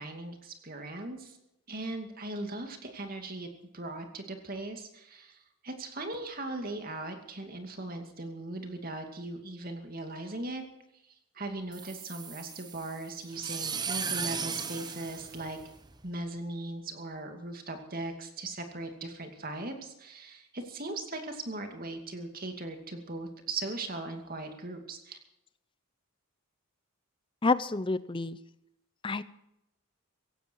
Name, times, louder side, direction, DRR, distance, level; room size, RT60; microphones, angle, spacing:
voice 1, 0.0-1.4 1.7-10.6 11.1-15.6 16.0-25.2, right 2 dB, 40° right, 5 dB, 2.5 m, -39 dB
sound 1, 11.7-16.1, right 6 dB, 20° right, 0.9 m, -37 dB
voice 2, 27.4-28.4 29.0-29.2, left 3 dB, 20° left, 16 dB, 0.6 m, -28 dB
16.5 x 16.0 x 4.7 m, 0.85 s
head